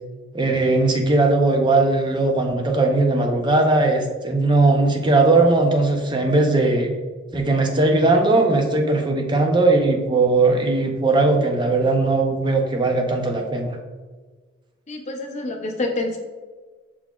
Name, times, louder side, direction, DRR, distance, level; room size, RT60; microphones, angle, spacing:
voice 1, 0.3-6.9 7.3-13.8, right 2 dB, 20° right, 3 dB, 0.5 m, -19 dB
voice 2, 14.9-16.2, left 2 dB, 35° left, 2 dB, 0.5 m, -27 dB
5.9 x 3.9 x 2.2 m, 1.4 s
head